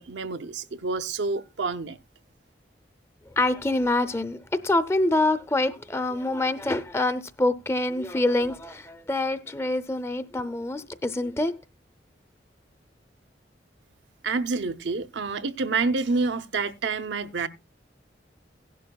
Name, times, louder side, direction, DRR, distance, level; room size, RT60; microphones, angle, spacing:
voice 1, 0.0-2.0 14.2-17.5, right 4 dB, 85° right, 0.7 m, -28 dB
voice 2, 3.3-11.5, left 2 dB, 15° left, 0.5 m, -26 dB
16.5 x 11.5 x 2.3 m
head